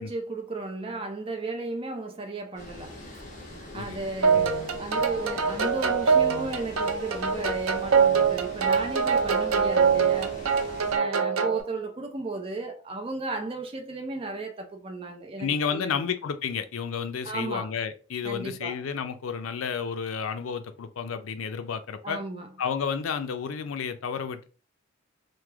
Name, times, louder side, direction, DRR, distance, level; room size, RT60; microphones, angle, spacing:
voice 1, 0.0-3.0 3.7-10.4 10.9-16.1 17.2-17.7 18.2-18.8 22.0-22.5, right 3 dB, 25° right, 0.4 m, -34 dB
Water, 2.6-11.0, left 1 dB, 35° left, 1.0 m, -43 dB
sound 1, 4.2-11.6, right 5 dB, 85° right, 0.5 m, -24 dB
voice 2, 15.4-22.2 22.6-24.5, left 6 dB, 80° left, 0.4 m, -31 dB
3.2 x 2.0 x 3.4 m
head